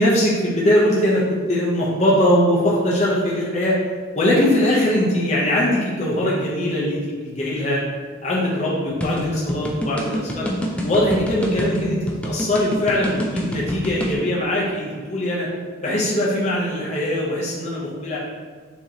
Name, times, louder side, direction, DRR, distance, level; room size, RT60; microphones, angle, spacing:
voice 1, 0.0-3.8 4.1-7.8 8.2-10.5 10.8-15.5 15.8-18.2, left 1 dB, 35° left, -5 dB, 0.6 m, -21 dB
sound 1, 9.0-14.2, equal, 5° left, 0.3 m, -27 dB
6.2 x 2.8 x 2.8 m, 1.5 s
head